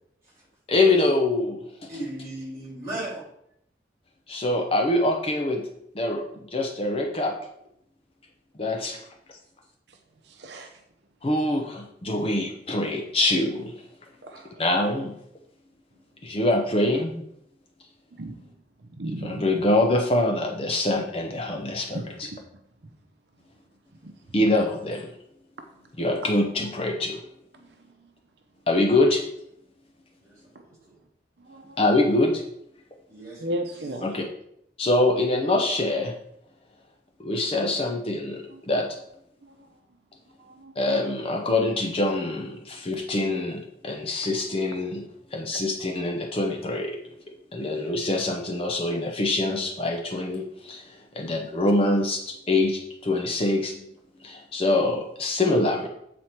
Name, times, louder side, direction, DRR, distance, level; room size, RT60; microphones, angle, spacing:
voice 1, 0.7-1.9 4.3-5.6 5.9-7.3 8.6-9.0 11.2-13.7 14.6-15.1 16.2-17.1 19.2-22.3 24.3-25.1 26.0-27.2 28.7-29.2 31.8-32.4 34.0-34.2 34.8-36.1 37.2-38.9 40.8-45.0 45.3-47.0 47.5-50.8 51.1-53.7 54.2-55.9, left 2 dB, 30° left, 0.6 m, -24 dB
voice 2, 1.9-3.2 8.8-8.9 30.2-30.7 33.1-33.4 44.4-44.5 53.7-53.8, right 1 dB, 20° right, 2.7 m, -37 dB
voice 3, 10.2-10.8 14.2-14.6 18.1-18.5 18.8-19.5 21.5-21.6 21.9-22.4 22.8-22.9 24.0-24.6 25.6-25.7 27.5-28.1 31.4-31.8 33.4-34.2 38.5-38.6 39.4-39.5 40.4-40.7, right 1 dB, 70° right, 0.7 m, -36 dB
8.0 x 4.2 x 4.4 m
head